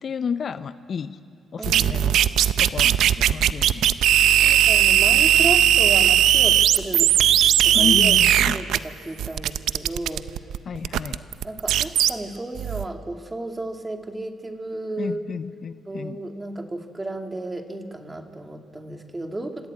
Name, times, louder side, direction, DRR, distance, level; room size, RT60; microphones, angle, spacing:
voice 1, 0.0-1.2 1.5-2.2 2.6-4.0 7.7-8.6 10.7-11.2 15.0-16.2, left 6 dB, 50° left, 13 dB, 0.6 m, -31 dB
voice 2, 1.6-2.2 4.4-7.2 7.6-8.2 8.5-10.3 11.2-15.2 15.9-19.7, right 2 dB, 20° right, 4 dB, 2.3 m, -33 dB
sound 1, 1.6-8.8 9.2-12.1 12.6-12.9, right 11 dB, 80° right, 0.6 m, -18 dB
26.5 x 15.0 x 8.6 m, 2.5 s
cardioid pair, 90°, 0 cm